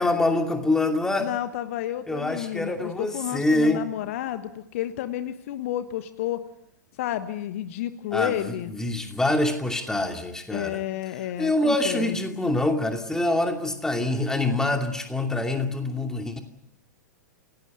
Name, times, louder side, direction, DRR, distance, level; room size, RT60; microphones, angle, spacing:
voice 1, 0.0-1.3 2.1-3.8 8.1-10.8 11.4-16.4, left 2 dB, 5° left, 4 dB, 2.6 m, -25 dB
voice 2, 1.2-6.4 7.0-8.7 10.5-12.1, left 12 dB, 50° left, 11 dB, 1.3 m, -31 dB
28.5 x 17.5 x 7.8 m, 0.82 s
figure-of-eight pair, 100°, 10 cm